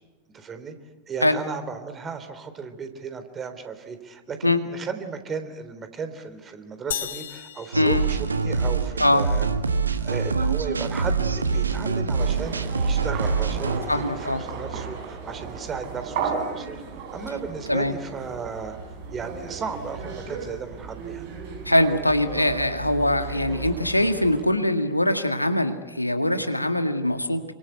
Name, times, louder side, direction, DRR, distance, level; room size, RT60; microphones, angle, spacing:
voice 1, 0.3-0.7 1.1-9.5 10.0-12.6 12.8-16.8 17.1-18.8 19.1-21.3, right 5 dB, 20° right, 9 dB, 3.5 m, -35 dB
sound 1, 6.9-8.8, left 10 dB, 60° left, 1.3 m, -35 dB
sound 2, 7.7-13.8, right 4 dB, 75° right, 1.6 m, -25 dB
sound 3, 12.2-24.4, right 5 dB, 50° right, 7.1 m, -35 dB
voice 2, 13.9-14.4 17.7-17.9 21.7-27.5, left 1 dB, 85° left, 8 dB, 1.9 m, -22 dB
28.5 x 25.0 x 8.2 m, 1.2 s
figure-of-eight pair, 90°, 0 cm